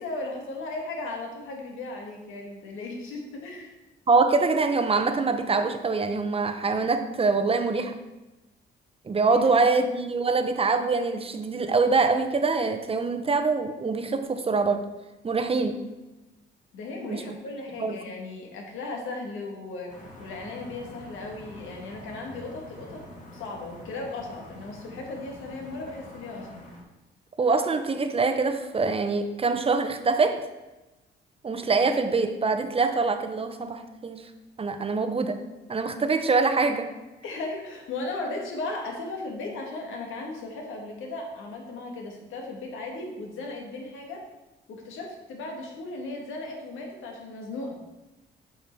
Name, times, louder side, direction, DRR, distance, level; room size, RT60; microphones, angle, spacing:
voice 1, 0.0-3.7 16.7-19.9 20.2-23.0 23.3-26.7 37.2-44.2 44.7-47.8, left 2 dB, 85° left, 1 dB, 1.8 m, -36 dB
voice 2, 4.1-8.0 9.0-14.8 15.2-15.8 17.1-17.3 17.8-18.0 27.4-30.5 31.4-34.3 34.6-35.4 35.7-36.9, right 4 dB, 30° right, 8 dB, 0.9 m, -24 dB
sound 1, 19.9-26.8, left 1 dB, 40° left, 2.1 m, -46 dB
7.5 x 5.4 x 4.6 m, 1.1 s
cardioid pair, 90°, 20 cm